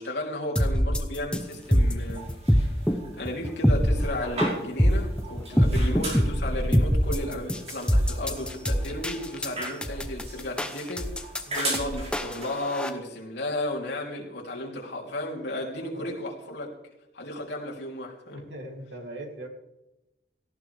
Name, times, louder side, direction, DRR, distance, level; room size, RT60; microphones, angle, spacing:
voice 1, 0.0-2.6 2.9-16.7 17.1-18.4, left 1 dB, 70° left, -2 dB, 3.3 m, -34 dB
sound 1, 0.6-12.9, equal, 5° left, 0.8 m, -24 dB
sound 2, 1.4-12.8, right 2 dB, 35° right, 5.2 m, -39 dB
voice 2, 18.3-19.5, right 1 dB, 80° right, 2 dB, 2.9 m, -41 dB
17.5 x 14.5 x 3.5 m, 0.96 s
head